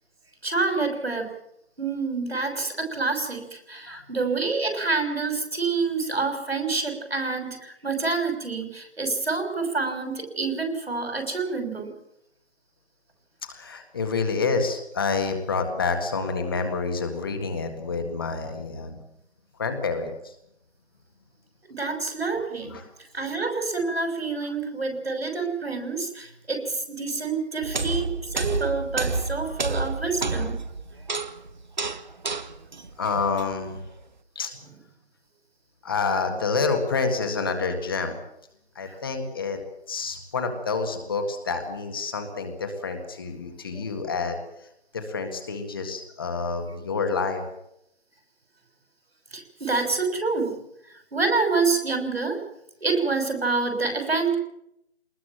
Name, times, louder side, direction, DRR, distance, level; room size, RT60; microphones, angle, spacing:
voice 1, 0.4-1.3 1.8-11.9 21.7-30.6 38.9-39.0 43.7-43.8 49.3-50.6 50.9-52.4 52.8-54.3, right 4 dB, 70° right, 6 dB, 6.3 m, -27 dB
voice 2, 13.5-19.0 19.6-20.3 22.7-22.8 33.0-33.8 34.4-34.5 35.8-38.2 38.8-39.6 39.9-44.4 44.9-47.4, left 4 dB, 20° left, 5 dB, 1.8 m, -28 dB
sound 1, 27.6-33.9, right 3 dB, 45° right, 1.2 m, -30 dB
21.5 x 20.0 x 7.5 m, 0.78 s
figure-of-eight pair, 165°, 32 cm